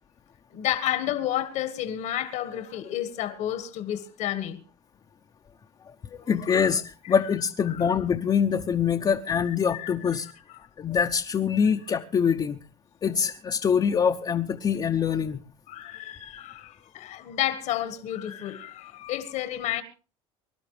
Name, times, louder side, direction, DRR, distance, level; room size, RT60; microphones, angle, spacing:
voice 1, 0.5-4.6 6.5-6.6 7.2-7.3 7.7-7.9 9.4-10.2 15.7-19.8, left 12 dB, 65° left, 1.6 m, -31 dB
voice 2, 5.9-10.3 10.8-12.6 13.0-15.4, left 7 dB, 30° left, 0.9 m, -24 dB
24.5 x 11.5 x 3.3 m
supercardioid pair, 110°, 14 cm